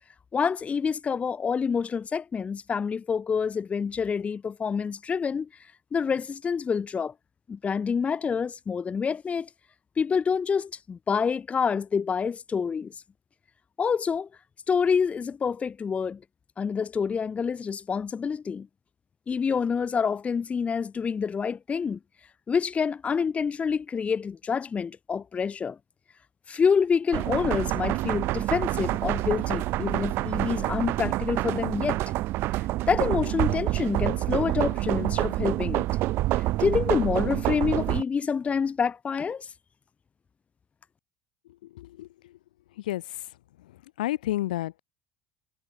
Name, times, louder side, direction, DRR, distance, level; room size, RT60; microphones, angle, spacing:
voice 1, 0.3-5.5 5.9-7.1 7.5-9.5 10.0-12.9 13.8-14.3 14.7-16.2 16.6-18.7 19.3-22.0 22.5-25.8 26.5-32.0 32.9-35.9 36.3-39.5, left 6 dB, 30° left, 1.0 m, -27 dB
sound 1, 27.1-38.0, right 17 dB, 60° right, 0.5 m, -27 dB
voice 2, 41.8-42.1 42.9-43.0 44.0-44.8, left 15 dB, 90° left, 0.7 m, -29 dB
hypercardioid pair, 85°, 4 cm